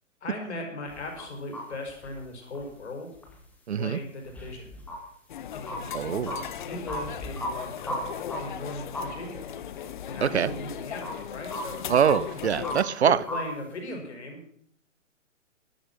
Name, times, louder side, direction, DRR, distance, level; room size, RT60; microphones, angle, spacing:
voice 1, 0.2-3.1 3.8-4.7 5.5-5.9 6.6-9.5 10.1-11.8 13.0-14.4, left 2 dB, 55° left, 2 dB, 5.3 m, -38 dB
sound 1, 0.9-1.3 1.5-1.6 1.9-2.2 2.5-2.7 3.2-3.4 4.3-5.0 5.7-8.0 8.3-8.4 8.9-9.1 9.6-9.7 11.0-11.1 11.4-12.2 12.6-12.8 13.3-13.4 13.8-13.9, equal, 5° left, 2.1 m, -35 dB
voice 2, 3.7-4.0 5.9-6.4 10.2-10.5 11.9-13.2, right 8 dB, 55° right, 19 dB, 0.7 m, -24 dB
sound 2, 5.3-12.8, left 9 dB, 40° left, 0.8 m, -37 dB
12.5 x 12.0 x 6.0 m, 0.63 s
figure-of-eight pair, 130°, 39 cm